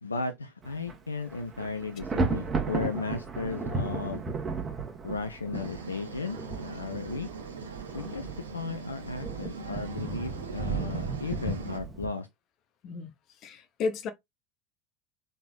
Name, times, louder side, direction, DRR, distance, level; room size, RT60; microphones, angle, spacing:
voice 1, 0.0-4.2 5.0-7.3 7.9-8.3 8.5-12.3, left 4 dB, 85° left, 0.5 m, -35 dB
Thunder, 0.6-1.0 1.3-12.1, right 4 dB, 25° right, 1.4 m, -34 dB
sound 1, 5.5-11.8, right 4 dB, 75° right, 0.8 m, -42 dB
voice 2, 13.4-14.1, left 4 dB, 45° left, 1.0 m, -32 dB
3.9 x 3.8 x 2.5 m
figure-of-eight pair, 70°, 0 cm